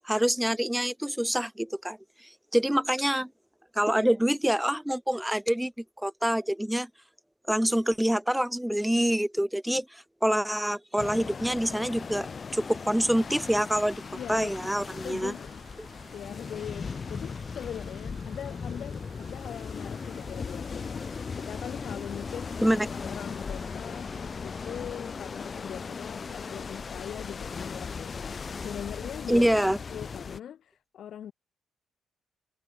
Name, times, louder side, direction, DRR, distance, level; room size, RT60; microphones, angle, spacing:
voice 1, 0.0-3.3 3.8-5.7 6.0-6.9 7.5-12.3 12.5-14.0 14.3-15.3 22.6-23.0 29.3-29.8, equal, 5° right, 0.3 m, -26 dB
sound 1, 11.0-30.4, left 5 dB, 40° left, 1.1 m, -38 dB
sound 2, 13.1-24.8, right 14 dB, 85° right, 4.9 m, -58 dB
voice 2, 14.1-15.6 16.1-22.6 23.0-24.1 24.4-29.5 29.9-31.3, left 10 dB, 65° left, 1.7 m, -41 dB
cardioid pair, 90°, 0 cm